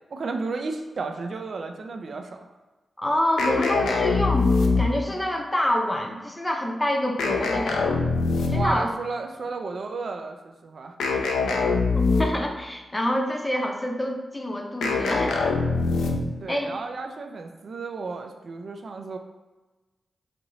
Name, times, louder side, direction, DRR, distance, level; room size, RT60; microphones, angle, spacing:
voice 1, 0.1-2.4 8.5-10.9 11.6-11.8 16.4-19.2, right 3 dB, 65° right, 5 dB, 0.3 m, -33 dB
voice 2, 3.0-8.1 8.5-8.9 11.9-15.6 16.5-16.7, left 1 dB, 15° left, 2 dB, 0.5 m, -27 dB
sound 1, 3.4-5.2 7.2-8.9 11.0-12.5 14.8-16.4, left 4 dB, 90° left, 0.3 m, -23 dB
2.7 x 2.5 x 3.0 m, 1.2 s
supercardioid pair, 45°, 0 cm